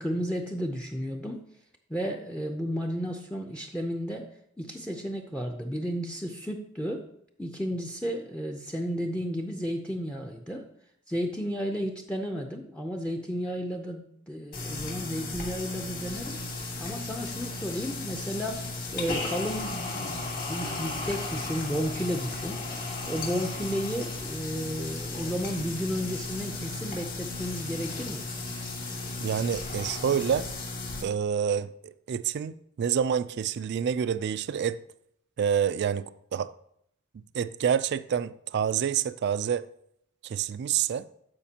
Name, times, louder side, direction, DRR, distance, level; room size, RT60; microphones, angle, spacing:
voice 1, 0.0-1.4 1.9-4.3 4.6-7.1 7.4-10.7 11.1-16.4 16.8-18.6 18.9-22.6 23.1-28.3, equal, 5° left, 0.6 m, -33 dB
sound 1, 14.5-31.0, left 2 dB, 45° left, 2.3 m, -35 dB
voice 2, 29.2-30.5 31.0-34.8 35.4-36.5 37.3-39.6 40.2-41.0, right 8 dB, 55° right, 0.3 m, -28 dB
14.0 x 5.1 x 2.9 m
head